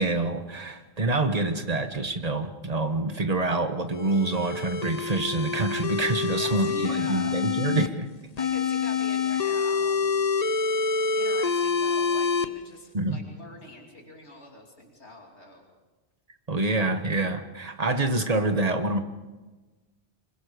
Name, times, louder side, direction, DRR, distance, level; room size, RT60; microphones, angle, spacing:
voice 1, 0.0-8.1 12.9-13.2 16.5-19.0, right 2 dB, 35° right, 7 dB, 1.6 m, -26 dB
sound 1, 3.9-7.9 8.4-12.4, left 5 dB, 40° left, 0.9 m, -27 dB
voice 2, 6.3-7.4 8.4-10.3 11.1-15.6, left 1 dB, 85° left, 0 dB, 3.2 m, -44 dB
26.0 x 22.0 x 5.2 m, 1.2 s
omnidirectional pair, 1.1 m